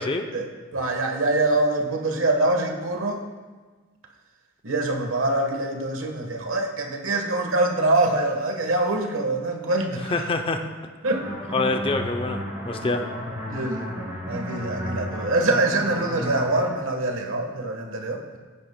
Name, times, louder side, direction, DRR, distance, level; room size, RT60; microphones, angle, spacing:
voice 1, 0.3-3.2 4.6-10.2 11.0-11.3 13.5-14.0 14.3-18.4, right 2 dB, 85° right, 3 dB, 1.3 m, -24 dB
voice 2, 10.0-10.7 11.5-13.1, left 3 dB, 25° left, 6 dB, 0.6 m, -26 dB
sound 1, 11.0-16.7, equal, 15° right, 2.6 m, -33 dB
16.0 x 10.5 x 2.2 m, 1.4 s
head